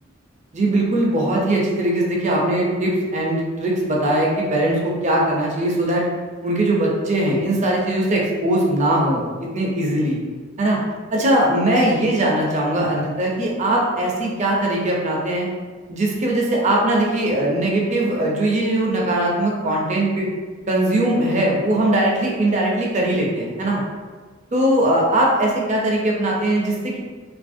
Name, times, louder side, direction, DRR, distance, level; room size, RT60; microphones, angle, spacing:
voice 1, 0.5-6.1 6.4-10.2 10.6-10.8 11.1-15.5 15.9-20.3 20.7-23.8 24.5-27.0, right 1 dB, 40° right, -3 dB, 0.6 m, -20 dB
2.8 x 2.5 x 2.5 m, 1.4 s
head